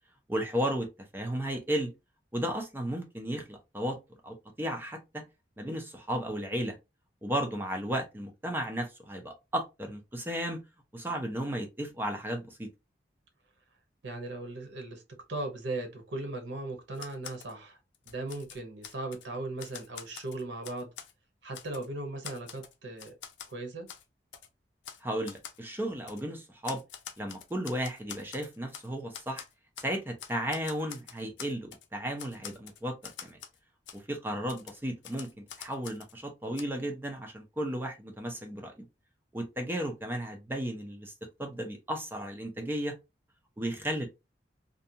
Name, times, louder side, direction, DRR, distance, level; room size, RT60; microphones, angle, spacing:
voice 1, 0.3-0.9 1.1-1.9 2.3-4.0 4.2-5.2 5.6-6.8 7.2-10.6 10.9-12.7 25.0-26.8 27.2-29.4 29.8-33.0 33.2-33.4 33.9-38.7 39.3-41.1 41.4-42.9 43.6-44.1, equal, 10° right, 0.4 m, -34 dB
voice 2, 14.0-15.0 15.3-17.8 18.1-20.9 21.4-23.1 23.5-23.9, right 2 dB, 80° right, 0.8 m, -38 dB
Typewriter, 16.9-17.5 17.9-19.3 19.6-21.1 21.5-21.9 22.2-23.5 23.9-24.0 24.3-24.5 24.8-25.0 25.3-25.6 26.1-26.2 26.6-28.9 29.1-29.9 30.2-31.9 32.2-33.6 33.9-34.0 34.5-36.1 36.6-36.7, left 9 dB, 80° left, 0.4 m, -45 dB
2.6 x 2.2 x 2.6 m
head